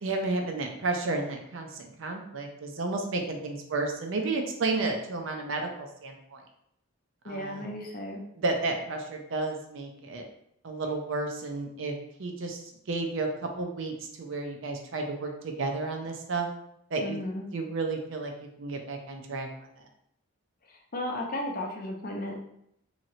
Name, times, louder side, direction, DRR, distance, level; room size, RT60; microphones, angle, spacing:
voice 1, 0.0-6.4 7.2-7.7 8.4-10.2 10.6-11.9 12.2-13.3 13.6-16.5 16.9-17.2 17.5-19.5, right 3 dB, 65° right, 3 dB, 0.5 m, -32 dB
voice 2, 7.2-8.2 17.0-17.5 20.7-22.3, left 1 dB, 45° left, 0 dB, 0.6 m, -34 dB
3.0 x 2.8 x 2.7 m, 0.76 s
head